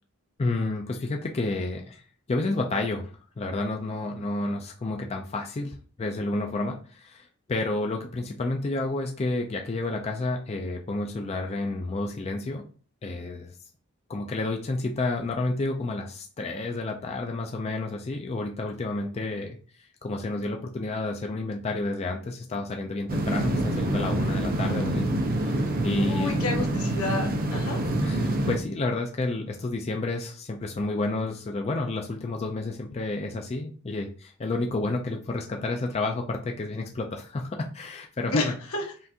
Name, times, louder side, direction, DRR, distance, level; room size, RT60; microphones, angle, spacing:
voice 1, 0.4-2.0 2.3-3.1 3.4-12.7 13.0-13.5 14.1-19.6 20.0-25.1 25.4-26.4 28.0-38.5, left 2 dB, 30° left, 2 dB, 0.3 m, -30 dB
sound 1, 23.1-28.6, right 1 dB, 40° right, 0.6 m, -26 dB
voice 2, 26.0-27.8 38.3-38.8, left 3 dB, 80° left, 0 dB, 1.1 m, -30 dB
5.6 x 2.5 x 2.7 m, 0.41 s
head